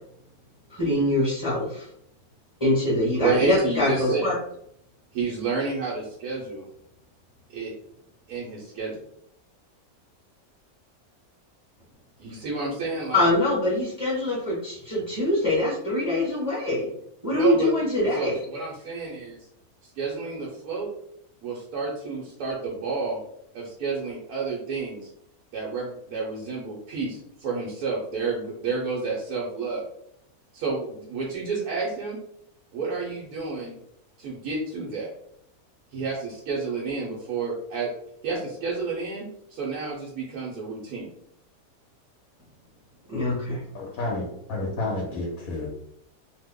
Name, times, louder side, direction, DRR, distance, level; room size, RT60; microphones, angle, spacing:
voice 1, 0.7-1.9 2.6-4.3 13.1-16.9 17.2-18.4 43.1-43.6, left 1 dB, 15° left, -5 dB, 0.9 m, -24 dB
voice 2, 3.2-4.3 5.1-6.7 7.5-7.7 8.3-9.0 12.2-13.3 17.3-17.7 18.1-19.4 20.0-20.9 21.4-23.2 23.5-25.1 25.5-29.8 30.5-32.2 32.7-33.8 34.2-35.1 35.9-37.9 38.2-39.3 39.5-41.1, right 4 dB, 90° right, -4 dB, 1.2 m, -30 dB
voice 3, 43.7-45.7, left 2 dB, 70° left, -2 dB, 1.1 m, -30 dB
2.9 x 2.1 x 3.5 m, 0.72 s
omnidirectional pair, 1.6 m